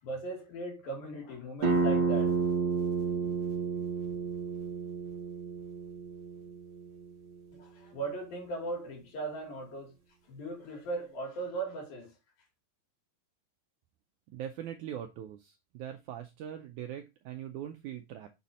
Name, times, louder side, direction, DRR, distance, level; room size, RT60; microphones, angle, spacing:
voice 1, 0.0-2.4 7.5-10.0 10.2-12.2, right 3 dB, 75° left, 4.1 m, -38 dB
sound 1, 1.6-7.0, right 4 dB, 45° right, 1.6 m, -31 dB
voice 2, 14.3-18.3, right 10 dB, 80° right, 1.8 m, -41 dB
7.1 x 4.1 x 4.1 m
omnidirectional pair, 4.1 m